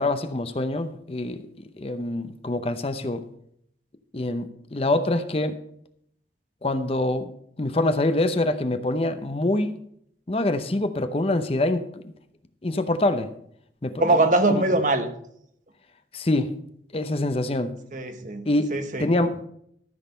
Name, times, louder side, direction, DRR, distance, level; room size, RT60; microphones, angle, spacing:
voice 1, 0.0-1.4 1.8-3.2 4.1-5.6 6.6-7.3 7.6-9.8 10.3-12.0 12.6-13.3 13.8-14.2 14.5-14.6 16.1-16.5 16.9-17.7 18.5-18.7 19.0-19.5, left 2 dB, 30° left, 10 dB, 0.7 m, -25 dB
voice 2, 14.0-15.1 17.9-18.5 18.7-19.1, right 2 dB, 45° right, 7 dB, 1.1 m, -22 dB
13.5 x 6.5 x 5.5 m, 0.70 s
head